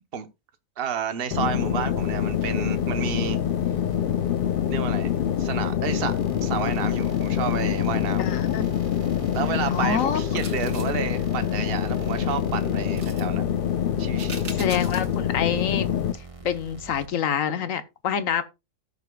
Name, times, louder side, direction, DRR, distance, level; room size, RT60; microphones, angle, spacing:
voice 1, 0.8-3.4 4.7-8.3 9.3-13.5 14.0-14.5, right 8 dB, 50° right, 1.1 m, -31 dB
sound 1, 1.3-16.1, left 9 dB, 55° left, 0.7 m, -25 dB
sound 2, 2.0-17.1, right 3 dB, 25° right, 1.3 m, -44 dB
voice 2, 8.2-8.7 9.7-10.5 13.4-13.5 14.5-15.9 16.4-18.4, left 8 dB, 75° left, 1.4 m, -27 dB
sound 3, 10.4-11.0 13.0-13.2 14.2-15.1 15.6-15.7, right 4 dB, 85° right, 2.4 m, -40 dB
17.5 x 6.8 x 2.3 m
omnidirectional pair, 1.4 m